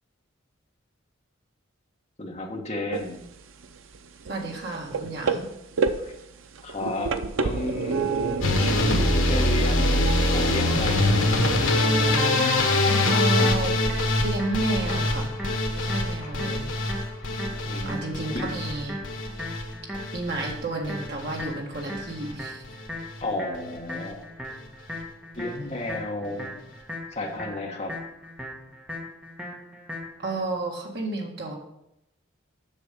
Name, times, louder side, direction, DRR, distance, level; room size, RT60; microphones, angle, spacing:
voice 1, 2.2-3.2 6.0-6.1 6.6-8.8 9.1-10.1 10.3-11.3 16.2-16.3 17.6-18.5 23.2-24.2 25.3-26.5 27.1-27.9, left 2 dB, 35° left, 1 dB, 1.3 m, -33 dB
sound 1, 2.9-12.4, right 4 dB, 80° right, 0.6 m, -29 dB
voice 2, 4.3-5.5 13.1-13.7 14.2-15.3 15.7-16.7 17.8-19.0 20.1-22.7 30.2-31.5, right 2 dB, 55° right, -1 dB, 1.9 m, -31 dB
sound 2, 8.4-20.5 20.8-21.4 21.7-22.3 22.6-22.9 23.2-23.3 23.5-23.6, left 2 dB, 75° left, 1.3 m, -24 dB
sound 3, 12.4-30.4, equal, 5° right, 1.4 m, -38 dB
7.5 x 6.3 x 5.3 m, 0.81 s
head